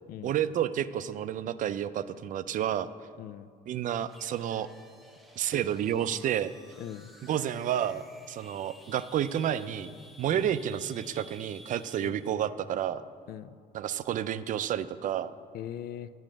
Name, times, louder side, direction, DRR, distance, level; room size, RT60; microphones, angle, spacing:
voice 1, 0.2-2.9 3.7-4.7 5.4-6.5 7.2-13.0 13.7-15.3, right 10 dB, 50° right, 14 dB, 0.4 m, -30 dB
voice 2, 3.2-3.5 5.4-5.6 6.2-6.3 6.8-7.1 10.3-10.6 12.0-12.2 13.3-13.6 15.5-16.1, left 11 dB, 65° left, 15 dB, 0.4 m, -41 dB
sound 1, 4.1-12.3, equal, ahead, 0.8 m, -54 dB
8.6 x 6.1 x 7.6 m, 2.2 s
cardioid pair, 110°, 17 cm